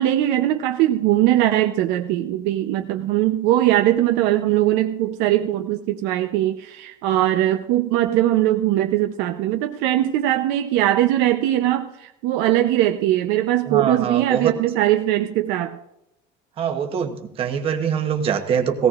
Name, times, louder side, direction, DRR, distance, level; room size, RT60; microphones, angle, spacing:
voice 1, 0.0-15.8, right 13 dB, 60° right, 6 dB, 0.7 m, -20 dB
voice 2, 13.7-14.5 16.6-18.9, right 7 dB, 30° right, 6 dB, 1.0 m, -23 dB
18.0 x 17.0 x 2.5 m, 0.85 s
cardioid pair, 175°, 20 cm